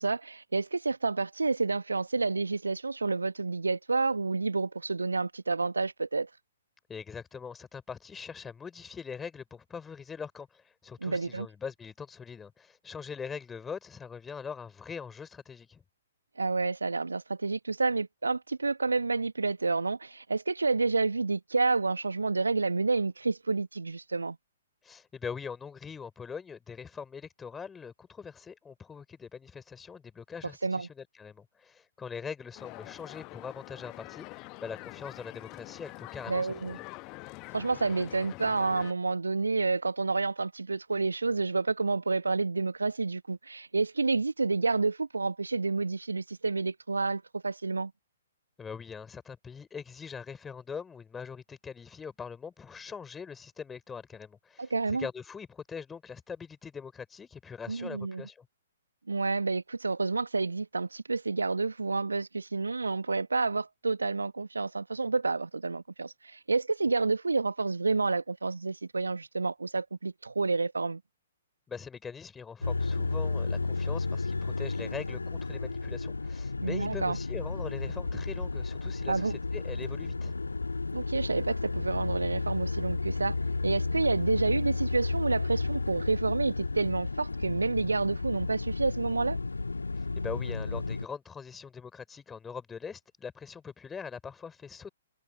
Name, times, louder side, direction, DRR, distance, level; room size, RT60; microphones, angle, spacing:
voice 1, 0.0-6.3 11.0-11.5 16.4-24.4 30.6-30.9 36.3-36.8 37.5-47.9 54.6-55.1 57.7-58.2 59.1-71.0 76.6-77.2 79.1-79.4 80.9-83.4 83.6-89.4, right 3 dB, 75° right, 1.7 m, -29 dB
voice 2, 6.9-15.8 24.8-36.8 48.6-58.5 71.7-80.4 89.9-94.9, left 6 dB, 10° left, 4.7 m, -42 dB
sound 1, 32.5-38.9, left 26 dB, 30° left, 1.2 m, -45 dB
sound 2, 72.6-91.1, left 3 dB, 75° left, 1.9 m, -32 dB
figure-of-eight pair, 120°, 0 cm